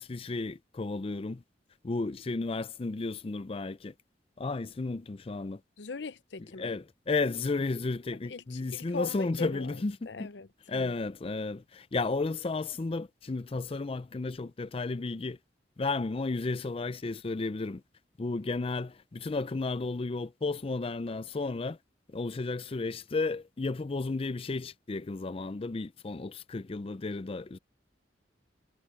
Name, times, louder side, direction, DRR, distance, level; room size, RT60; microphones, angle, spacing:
voice 1, 0.0-1.4 1.8-3.9 4.4-5.6 6.6-10.3 10.7-15.4 15.8-17.8 18.2-21.8 22.1-27.6, left 3 dB, 30° left, 0.4 m, -33 dB
voice 2, 5.8-6.8 8.2-10.9, left 4 dB, 75° left, 0.7 m, -41 dB
head